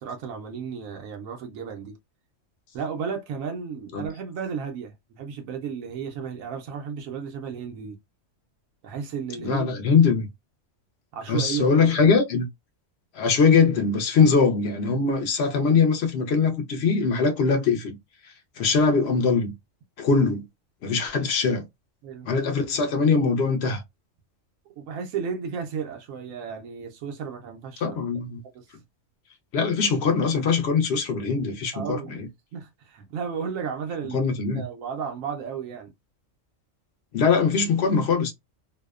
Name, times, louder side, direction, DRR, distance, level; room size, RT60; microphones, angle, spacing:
voice 1, 0.0-2.0 2.7-8.0 8.8-9.7 11.1-12.0 22.0-22.3 24.8-28.0 28.5-28.7 31.7-35.9, right 6 dB, 90° right, 1.0 m, -33 dB
voice 2, 9.4-10.3 11.3-12.5 13.1-18.0 18.6-19.5 20.0-20.4 20.8-21.7 22.3-23.8 27.8-28.4 29.5-32.3 34.1-34.6 37.1-38.3, left 5 dB, 60° left, 0.8 m, -22 dB
2.7 x 2.1 x 2.3 m
omnidirectional pair, 1.4 m